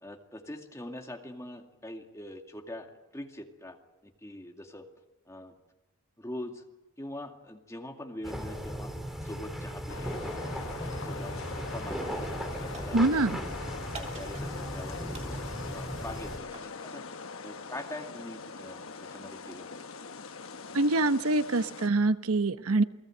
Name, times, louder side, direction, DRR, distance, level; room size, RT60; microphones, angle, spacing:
voice 1, 0.0-3.8 4.0-4.9 5.3-5.5 6.2-6.6 7.0-8.9 9.2-10.2 10.7-12.6 12.8-13.5 13.9-17.0 17.4-19.7, left 1 dB, 15° left, 3 dB, 2.3 m, -43 dB
sound 1, 8.2-16.4, equal, ahead, 2.7 m, -37 dB
sound 2, 9.9-21.9, left 4 dB, 65° left, 1.1 m, -42 dB
sound 3, 12.7-13.4 13.9-14.8 15.1-16.8, right 3 dB, 30° right, 2.7 m, -48 dB
voice 2, 12.9-13.4 20.7-22.8, right 2 dB, 80° right, 11 dB, 0.9 m, -25 dB
28.5 x 19.0 x 7.9 m, 1.1 s
head